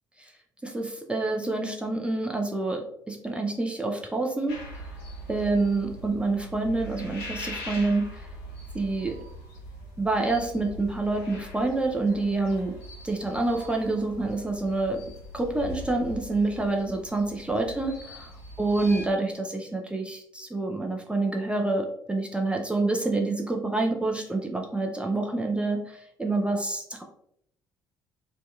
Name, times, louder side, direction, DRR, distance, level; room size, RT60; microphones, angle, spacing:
voice 1, 0.6-4.6 5.3-8.3 8.7-9.2 10.0-12.7 13.0-15.0 15.3-18.3 18.6-27.0, right 2 dB, 10° right, 1 dB, 0.4 m, -27 dB
sound 1, 4.5-19.1, equal, 65° left, 0.6 m, -42 dB
2.6 x 2.2 x 2.3 m, 0.69 s
figure-of-eight pair, 50°, 10 cm